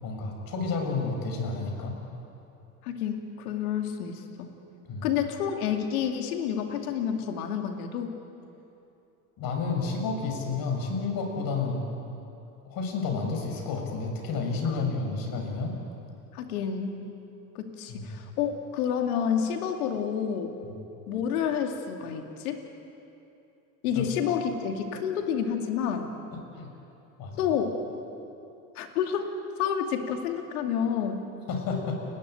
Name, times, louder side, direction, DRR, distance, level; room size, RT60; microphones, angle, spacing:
voice 1, 0.0-2.0 4.9-5.1 9.4-11.8 12.6-15.7 17.9-18.1 23.9-24.0 26.5-26.7 27.2-27.4 31.5-32.0, left 4 dB, 50° left, 2 dB, 6.7 m, -30 dB
voice 2, 2.8-4.5 5.0-8.2 14.6-14.8 16.3-17.0 17.5-20.6 21.1-22.6 23.8-26.1 27.4-27.8 28.8-29.3 29.6-31.2, left 8 dB, 70° left, 4 dB, 2.6 m, -29 dB
29.5 x 13.5 x 9.2 m, 2.8 s
hypercardioid pair, 75°, 45 cm